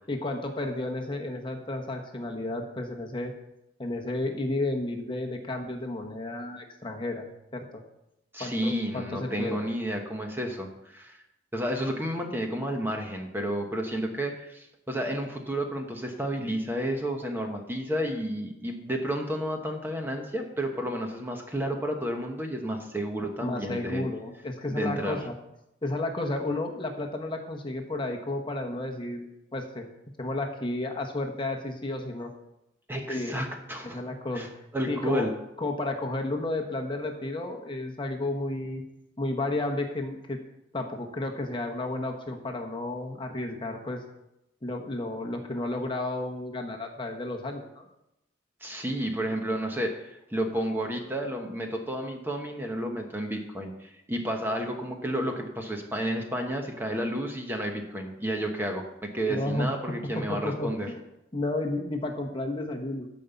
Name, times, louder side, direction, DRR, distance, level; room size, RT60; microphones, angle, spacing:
voice 1, 0.1-3.3 3.8-7.6 8.4-9.7 23.4-25.3 25.8-29.9 30.2-32.3 33.1-33.4 33.8-34.5 34.9-35.3 35.6-38.8 39.2-40.4 40.7-44.0 44.6-47.9 59.3-59.7 60.1-61.0 61.3-63.1, left 2 dB, 25° left, 2 dB, 1.1 m, -32 dB
voice 2, 8.3-11.2 11.5-24.0 24.7-25.2 32.9-34.0 34.3-34.5 34.7-35.3 48.6-60.9, right 1 dB, 10° right, 2 dB, 1.1 m, -31 dB
13.0 x 5.3 x 7.0 m, 0.88 s
head